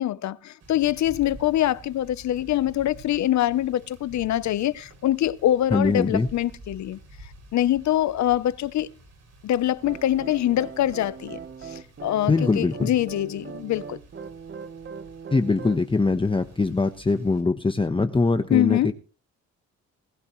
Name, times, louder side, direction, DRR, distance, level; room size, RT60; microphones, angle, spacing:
voice 1, 0.0-7.0 7.5-8.9 9.4-14.0 18.5-18.9, left 13 dB, 65° left, 0.8 m, -24 dB
sound 1, 0.6-17.4, right 2 dB, 55° right, 6.6 m, -49 dB
voice 2, 5.7-6.3 12.3-12.9 15.3-18.9, left 3 dB, 15° left, 1.0 m, -22 dB
sound 2, 9.8-15.9, right 6 dB, 40° right, 1.2 m, -40 dB
20.0 x 11.5 x 3.2 m
cardioid pair, 90°, 30 cm